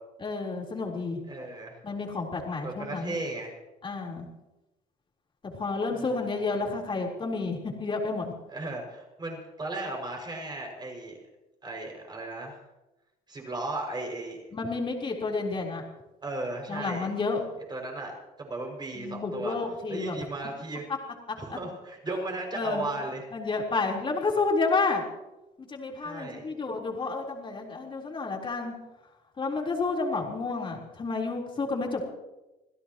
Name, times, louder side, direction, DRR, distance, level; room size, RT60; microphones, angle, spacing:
voice 1, 0.2-1.2 1.8-3.2 3.8-4.3 5.4-8.3 14.5-15.8 16.7-17.4 18.9-20.2 21.5-21.6 22.5-22.8 23.3-25.0 25.6-28.7 29.4-32.0, left 3 dB, 30° left, -1 dB, 4.0 m, -30 dB
voice 2, 1.3-1.8 2.6-3.6 5.9-6.2 8.5-11.2 11.6-12.6 13.3-14.4 16.2-17.1 17.7-19.6 19.9-20.9 21.4-23.2 26.0-26.5, right 2 dB, 25° right, 1 dB, 6.2 m, -36 dB
27.0 x 16.0 x 3.1 m, 1.0 s
cardioid pair, 110°, 17 cm